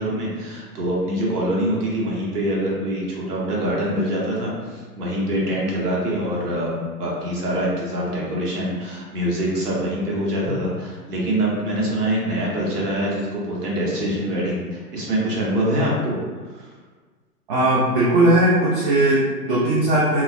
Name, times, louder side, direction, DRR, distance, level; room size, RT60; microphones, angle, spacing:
voice 1, 0.0-16.2 16.5-16.6, equal, 70° right, -4 dB, 1.0 m, -24 dB
voice 2, 17.5-20.2, right 1 dB, 35° right, -8 dB, 0.4 m, -18 dB
2.9 x 2.0 x 2.3 m, 1.4 s
figure-of-eight pair, 110°, 47 cm